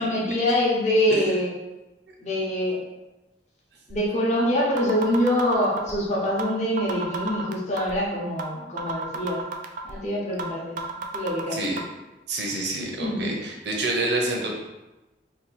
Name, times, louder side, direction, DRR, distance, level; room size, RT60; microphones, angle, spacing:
voice 1, 0.0-1.5 2.2-2.8 3.9-9.4 9.8-11.7 13.0-13.3, left 1 dB, 40° left, -5 dB, 0.8 m, -25 dB
sound 1, 3.9-4.0 4.4-4.5 4.8-5.9 6.4-6.5 6.8-7.9 8.4-8.5 8.8-9.9 10.4-10.5 10.8-11.8, right 5 dB, 45° right, 0.3 m, -32 dB
voice 2, 12.3-14.6, right 2 dB, 70° right, -1 dB, 0.7 m, -27 dB
2.8 x 2.3 x 4.1 m, 1.0 s
head